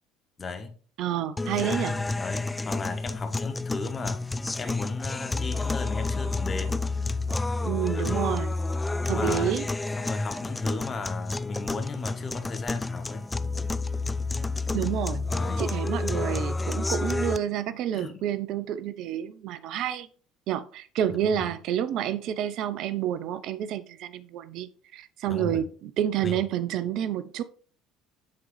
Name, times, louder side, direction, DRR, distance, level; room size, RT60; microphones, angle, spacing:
voice 1, 0.4-0.8 1.5-4.2 4.5-6.8 7.9-8.3 9.0-9.5 10.0-13.3 15.3-15.8 17.9-18.2 21.1-21.5 25.3-25.7 26.2-26.4, left 3 dB, 30° left, 0.9 m, -35 dB
voice 2, 1.0-2.0 7.6-8.6 9.1-9.6 14.7-15.2 15.6-20.1 20.5-27.4, right 10 dB, 55° right, 0.4 m, -29 dB
sound 1, 1.4-17.4, left 3 dB, 15° left, 0.3 m, -30 dB
8.7 x 3.8 x 3.1 m
figure-of-eight pair, 60°, 0 cm